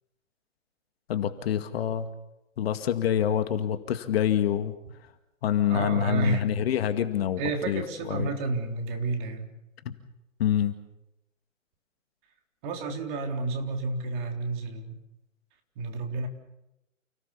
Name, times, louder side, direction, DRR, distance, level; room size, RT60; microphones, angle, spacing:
voice 1, 1.1-2.1 2.6-4.7 5.4-7.4 7.7-8.3 9.9-10.0 10.4-10.8, left 10 dB, 50° left, 9 dB, 2.2 m, -26 dB
voice 2, 5.7-6.5 7.4-9.5 12.6-15.0 15.8-16.3, right 3 dB, 40° right, 4 dB, 3.9 m, -30 dB
29.5 x 17.5 x 7.2 m, 0.89 s
hypercardioid pair, 130°, 40 cm